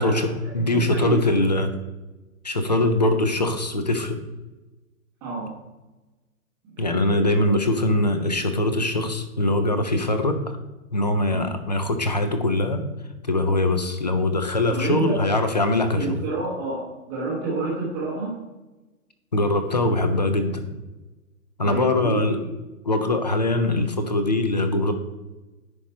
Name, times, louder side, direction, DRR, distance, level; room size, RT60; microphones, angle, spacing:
voice 1, 0.0-1.2 5.2-5.6 6.6-7.5 11.2-11.5 14.7-15.2 16.0-18.4 21.6-22.5, right 3 dB, 5° right, -5 dB, 0.8 m, -30 dB
voice 2, 0.5-1.7 2.4-4.2 6.8-10.4 10.9-12.8 13.2-16.2 19.3-20.7 21.6-22.4 22.9-24.9, left 2 dB, 30° left, 8 dB, 0.5 m, -22 dB
9.7 x 5.0 x 4.3 m, 1.1 s
hypercardioid pair, 170°, 44 cm